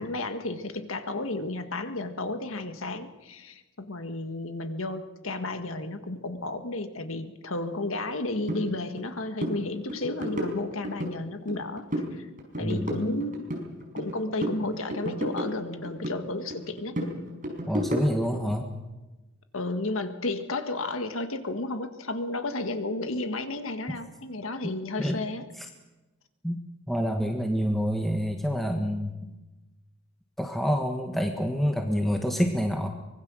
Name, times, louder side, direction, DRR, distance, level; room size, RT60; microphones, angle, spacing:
voice 1, 0.0-11.8 12.1-12.3 12.5-13.5 13.9-17.0 19.5-25.4, left 2 dB, 70° left, 8 dB, 1.7 m, -32 dB
sound 1, 8.5-8.6 9.0-9.1 9.4-9.6 9.9-11.1 11.5-12.1 12.4-14.1 14.4-16.2 16.5-18.4, equal, 40° right, 5.0 m, -32 dB
voice 2, 12.6-13.0 17.7-18.7 23.9-24.0 25.0-25.1 25.6-25.7 26.4-26.6 26.9-29.1 30.4-32.9, equal, ahead, 2 dB, 1.5 m, -27 dB
24.0 x 21.0 x 6.4 m, 1.1 s
head